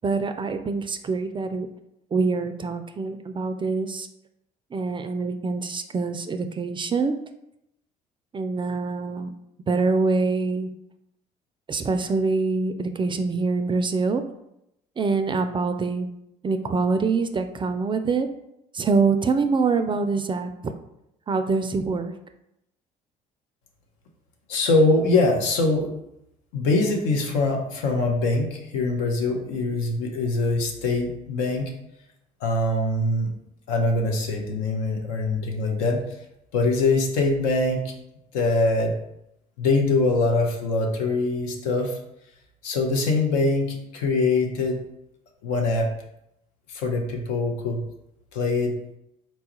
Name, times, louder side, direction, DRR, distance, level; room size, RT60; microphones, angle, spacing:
voice 1, 0.0-1.7 2.1-4.1 4.7-7.1 8.3-9.3 9.7-10.7 11.7-14.2 15.0-16.1 16.4-18.3 18.7-20.7 21.3-22.1, right 4 dB, 25° right, 8 dB, 0.3 m, -25 dB
voice 2, 24.5-25.9 26.5-31.7 32.4-33.3 33.7-36.0 36.5-37.9 38.3-38.9 39.6-42.0 42.6-44.8 45.4-45.9 46.7-47.8 48.3-48.8, left 2 dB, 80° left, 1 dB, 0.7 m, -23 dB
4.1 x 2.3 x 2.9 m, 0.82 s
hypercardioid pair, 60°, 20 cm